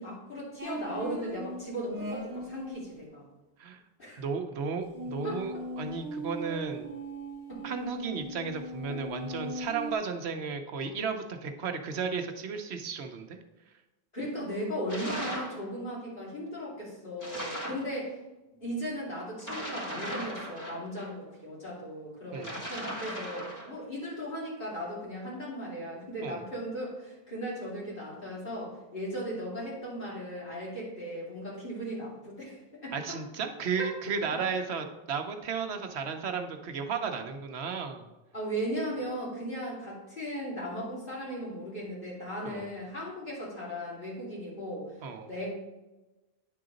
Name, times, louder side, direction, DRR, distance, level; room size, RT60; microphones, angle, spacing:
voice 1, 0.0-3.3 4.0-4.2 5.2-5.6 7.5-7.6 8.9-9.0 14.1-18.2 18.6-33.2 33.8-33.9 34.3-34.4 38.3-45.0 45.3-45.5, equal, 55° left, -6 dB, 2.9 m, -37 dB
sound 1, 0.6-2.8 4.9-9.9, equal, 20° right, 0.9 m, -39 dB
voice 2, 4.2-6.9 7.6-13.4 17.6-17.8 22.3-22.6 26.2-26.4 32.9-38.0 42.4-42.7 45.0-45.3, right 5 dB, 85° right, 6 dB, 1.0 m, -34 dB
sound 2, 14.9-15.6 17.2-17.9 19.4-21.1 22.3-23.7, equal, 15° left, 1.9 m, -38 dB
9.6 x 3.9 x 5.0 m, 1.1 s
omnidirectional pair, 1.1 m